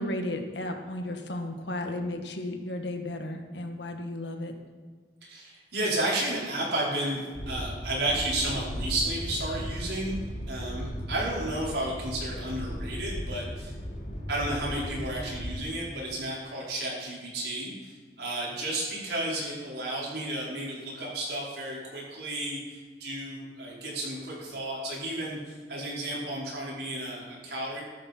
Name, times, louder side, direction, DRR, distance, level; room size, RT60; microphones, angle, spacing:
voice 1, 0.0-4.5, left 1 dB, 80° left, 4 dB, 1.8 m, -34 dB
voice 2, 5.2-7.2 7.5-10.1 10.5-13.7 14.3-27.8, right 1 dB, 70° right, -5 dB, 5.2 m, -32 dB
sound 1, 7.3-15.6, equal, 45° left, 2.6 m, -36 dB
14.5 x 12.5 x 4.6 m, 1.5 s
head